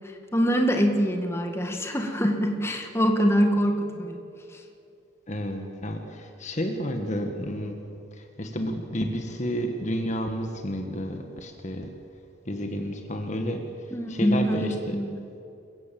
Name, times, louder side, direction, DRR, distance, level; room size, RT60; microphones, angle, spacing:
voice 1, 0.3-4.2 13.9-15.1, equal, 15° left, 3 dB, 1.9 m, -24 dB
voice 2, 5.3-7.8 8.1-11.9 12.4-13.6 14.1-15.0, equal, 35° left, 5 dB, 1.6 m, -31 dB
28.5 x 16.0 x 7.7 m, 2.7 s
head